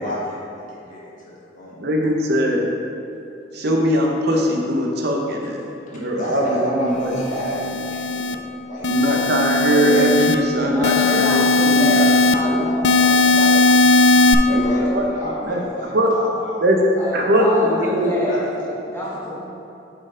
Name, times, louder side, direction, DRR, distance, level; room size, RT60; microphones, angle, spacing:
voice 1, 0.0-1.8 6.1-9.2 14.0-16.8 17.1-17.9 18.2-18.5, equal, 45° left, -6 dB, 1.3 m, -30 dB
voice 2, 1.8-2.7 3.5-5.6 5.9-6.5 6.7-7.1 8.9-12.7 14.5-14.6 14.9-15.0 15.5-15.6 15.9-16.1 16.6-16.8 17.1-18.1, equal, 55° right, 0 dB, 0.7 m, -20 dB
sound 1, 7.2-8.3 8.8-10.4 10.8-12.3 12.8-14.3, left 3 dB, 65° left, 0.3 m, -17 dB
voice 3, 10.7-14.4 17.0-19.4, equal, 10° left, -7 dB, 1.4 m, -27 dB
8.6 x 4.2 x 3.8 m, 2.7 s
head